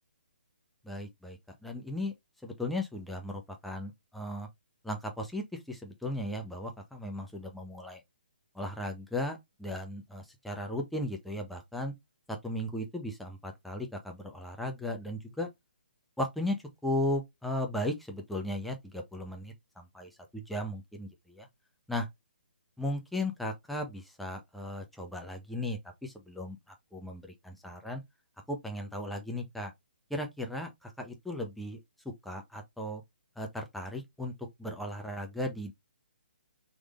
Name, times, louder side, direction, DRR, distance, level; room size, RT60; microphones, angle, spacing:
voice 1, 0.8-2.1 2.4-4.5 4.8-8.0 8.5-11.9 12.3-15.5 16.2-16.6 16.8-21.4 21.9-22.1 22.8-26.6 26.9-28.0 28.5-29.7 30.1-31.8 32.0-33.0 33.4-34.3 34.6-35.7, left 1 dB, ahead, 0.7 m, -36 dB
3.7 x 3.1 x 2.4 m
hypercardioid pair, 150°, 6 cm